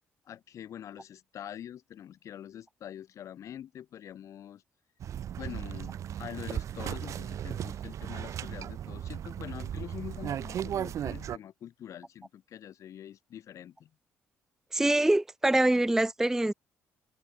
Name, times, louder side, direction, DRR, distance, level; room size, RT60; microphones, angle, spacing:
voice 1, 0.2-4.6 5.4-13.9, left 10 dB, 60° left, 1.6 m, -45 dB
sound 1, 5.0-11.4, right 10 dB, 60° right, 1.3 m, -36 dB
voice 2, 14.7-16.5, right 1 dB, 5° right, 0.4 m, -24 dB
hypercardioid pair, 55°, 6 cm